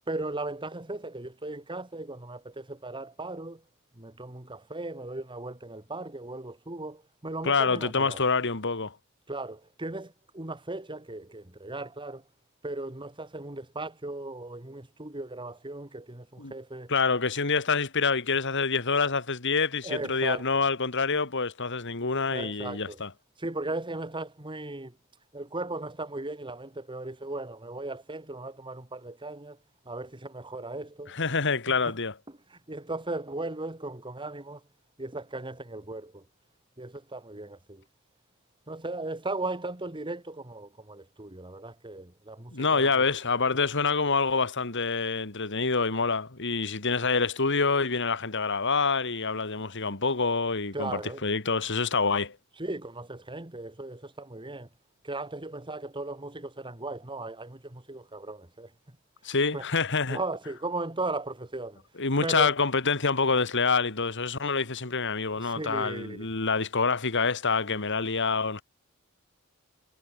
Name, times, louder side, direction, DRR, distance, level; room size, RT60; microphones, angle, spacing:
voice 1, 0.1-3.6 3.9-8.2 9.3-12.2 12.6-16.9 19.8-20.4 22.3-23.0 23.4-25.0 25.3-29.6 29.9-31.2 31.7-32.0 32.3-34.6 35.0-36.3 36.8-37.8 38.7-42.9 50.7-51.3 52.6-54.7 55.0-59.0 59.3-59.7 60.1-61.8 62.2-62.5 65.3-66.3, right 2 dB, 25° right, 2.1 m, -37 dB
voice 2, 7.4-9.0 16.4-16.5 16.9-23.1 31.1-32.1 42.5-52.4 59.2-60.2 62.0-68.6, left 4 dB, 60° left, 2.5 m, -26 dB
head